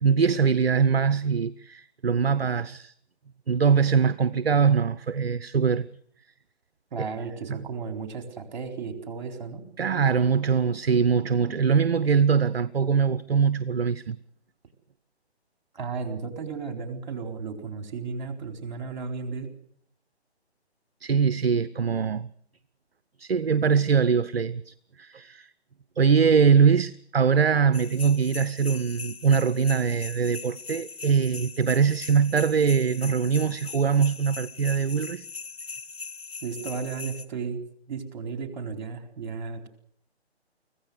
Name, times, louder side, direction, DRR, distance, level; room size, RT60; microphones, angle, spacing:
voice 1, 0.0-2.9 3.5-5.9 7.5-7.6 9.8-14.2 21.0-22.3 23.2-25.5 26.0-35.2, right 6 dB, 65° right, 0.9 m, -22 dB
voice 2, 6.9-9.6 15.7-19.5 36.4-37.6 37.9-39.7, right 5 dB, 40° right, 4.4 m, -34 dB
sound 1, 27.7-37.3, left 5 dB, 60° left, 1.8 m, -40 dB
24.5 x 16.0 x 8.0 m
figure-of-eight pair, 140°, 33 cm